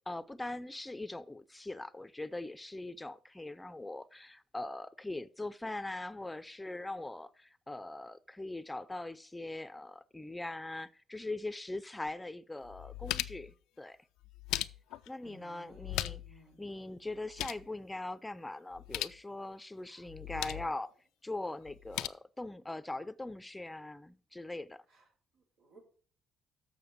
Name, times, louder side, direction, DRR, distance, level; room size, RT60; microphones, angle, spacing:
voice 1, 0.1-14.0 15.1-20.9 21.2-24.8, left 2 dB, 15° left, 0.6 m, -41 dB
sound 1, 12.1-12.2 12.6-13.5 14.2-15.1 15.7-16.4 16.7-16.8 17.1-17.7 18.7-19.2 20.1-20.7 21.7-22.1, left 15 dB, 90° left, 0.4 m, -38 dB
voice 2, 15.2-16.6 19.9-20.0 20.3-20.7 25.3-25.8, right 1 dB, 85° right, 5.7 m, -56 dB
7.0 x 6.4 x 7.2 m
cardioid pair, 80°, 0 cm